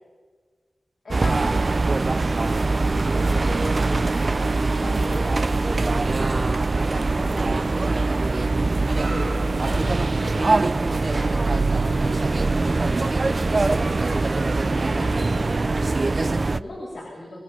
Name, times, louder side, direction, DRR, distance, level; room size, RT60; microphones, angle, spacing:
voice 1, 1.0-1.9 2.2-4.1 4.8-7.8 9.1-10.5 11.1-17.4, left 1 dB, 85° left, -3 dB, 7.1 m, -38 dB
sound 1, 1.1-16.6, right 3 dB, 55° right, 0.7 m, -22 dB
28.0 x 19.0 x 6.2 m, 1.4 s
wide cardioid pair, 55°, 0 cm